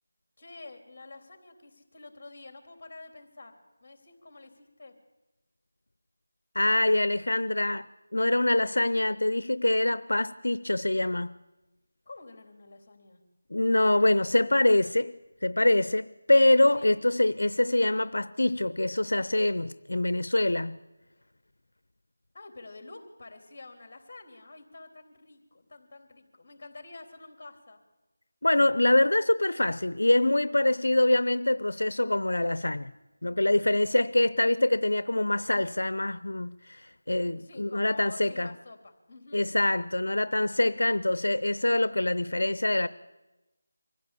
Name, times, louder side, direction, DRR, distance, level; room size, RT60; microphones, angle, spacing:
voice 1, 0.4-5.0 12.1-13.2 16.7-16.9 22.3-27.8 37.2-39.5, left 3 dB, 35° left, 3.5 m, -48 dB
voice 2, 6.5-7.9 8.1-11.3 13.5-15.1 15.4-20.8 28.4-32.9 33.2-38.5 39.3-42.9, left 1 dB, 85° left, 0.6 m, -24 dB
24.0 x 15.5 x 8.4 m
figure-of-eight pair, 170°, 0 cm